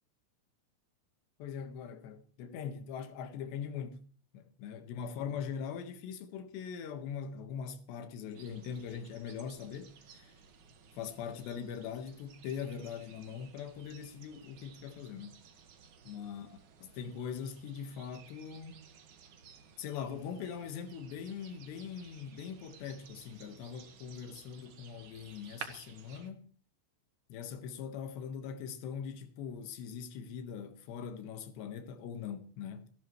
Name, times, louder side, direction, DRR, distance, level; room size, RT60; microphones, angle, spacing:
voice 1, 1.4-4.0 4.3-10.3 10.9-15.4 16.0-18.9 19.8-26.5 27.3-32.9, left 7 dB, 65° left, 3.4 m, -42 dB
sound 1, 8.3-26.3, right 7 dB, 60° right, 2.1 m, -55 dB
29.5 x 12.0 x 3.2 m
omnidirectional pair, 5.8 m